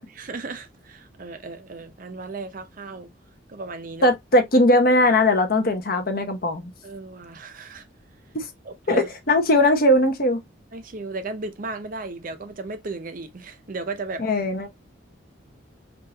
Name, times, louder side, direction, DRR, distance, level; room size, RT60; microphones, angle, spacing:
voice 1, 0.1-3.1 3.5-4.1 6.8-7.9 8.6-9.1 10.7-14.2, right 3 dB, 45° right, 0.6 m, -35 dB
voice 2, 4.0-6.7 8.3-8.5 8.9-10.4 14.2-14.7, left 1 dB, 50° left, 0.8 m, -19 dB
3.7 x 2.4 x 2.7 m
head